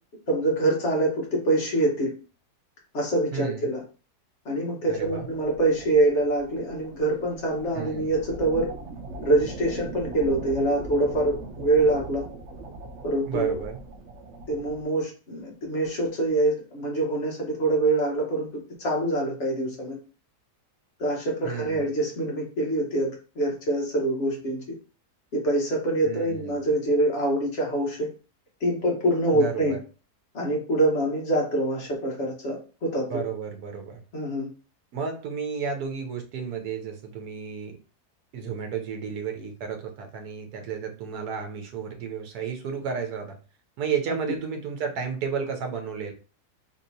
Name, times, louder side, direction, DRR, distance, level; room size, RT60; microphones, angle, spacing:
voice 1, 0.3-2.1 2.9-3.8 4.4-8.7 9.2-12.2 13.0-13.6 14.5-18.5 18.8-20.0 21.0-24.6 25.3-28.1 28.6-29.8 30.3-33.2 34.1-34.5, right 2 dB, 50° left, -1 dB, 1.3 m, -25 dB
voice 2, 3.3-3.7 4.9-5.3 7.7-8.1 13.3-13.8 21.4-21.9 26.0-26.6 29.3-29.8 33.1-34.0 34.9-37.8 38.3-43.4 43.8-46.1, right 6 dB, 75° right, 4 dB, 1.2 m, -32 dB
sound 1, 4.9-14.8, right 3 dB, 60° right, 0.8 m, -40 dB
3.6 x 2.8 x 2.7 m, 0.35 s
omnidirectional pair, 1.7 m